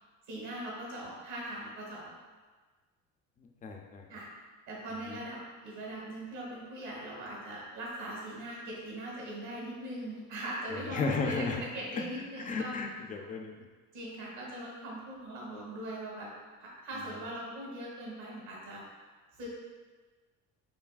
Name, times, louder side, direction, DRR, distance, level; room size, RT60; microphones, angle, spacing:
voice 1, 0.3-2.1 4.1-4.3 4.7-12.8 13.9-16.3 16.6-18.8 19.4-19.5, right 1 dB, 65° right, -4 dB, 1.5 m, -40 dB
voice 2, 3.6-4.1 5.1-5.2 10.7-11.6 12.0-12.1 12.4-13.5, left 4 dB, 25° left, 3 dB, 0.4 m, -34 dB
4.6 x 3.2 x 2.4 m, 1.4 s
cardioid pair, 125°, 32 cm